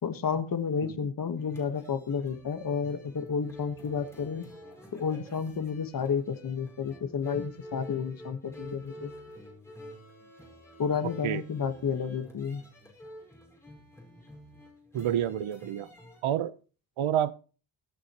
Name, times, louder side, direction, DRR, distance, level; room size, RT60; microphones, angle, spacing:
voice 1, 0.0-4.5 4.9-9.1 10.8-12.6, left 6 dB, 45° left, 1.5 m, -31 dB
sound 1, 1.4-16.2, equal, 5° left, 5.0 m, -48 dB
voice 2, 14.9-15.9 16.2-16.5 17.0-17.3, right 10 dB, 80° right, 1.0 m, -29 dB
24.5 x 8.6 x 3.0 m
wide cardioid pair, 155°, 48 cm